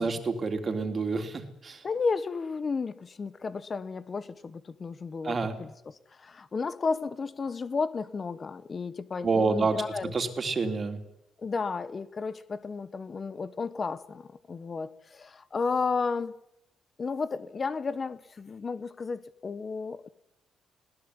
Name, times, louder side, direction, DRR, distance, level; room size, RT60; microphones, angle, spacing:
voice 1, 0.0-1.8 5.2-5.6 9.2-9.8 10.1-11.0, right 4 dB, 40° right, 3.4 m, -28 dB
voice 2, 1.8-10.1 11.4-16.3 17.0-20.1, left 4 dB, 35° left, 1.1 m, -33 dB
21.0 x 18.0 x 10.0 m
cardioid pair, 90°, 0 cm